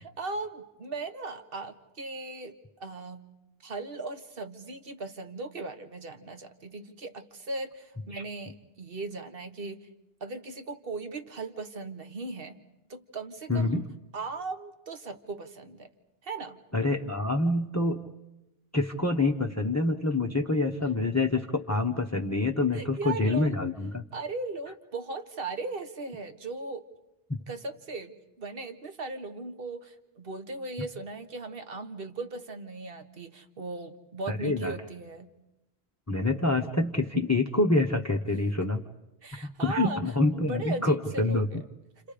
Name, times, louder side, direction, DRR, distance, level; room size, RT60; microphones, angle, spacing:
voice 1, 0.0-3.2 3.6-9.9 10.2-12.6 12.9-13.8 14.1-15.9 16.2-16.6 22.7-23.5 24.1-26.8 27.5-35.3 39.2-40.0 40.3-41.6, right 3 dB, 65° right, 8 dB, 1.6 m, -38 dB
voice 2, 13.5-13.9 16.7-18.1 18.7-24.0 27.3-27.4 34.3-34.8 36.1-38.8 39.4-41.6, left 2 dB, 15° left, 4 dB, 1.0 m, -26 dB
29.5 x 28.5 x 5.0 m, 0.92 s
omnidirectional pair, 1.0 m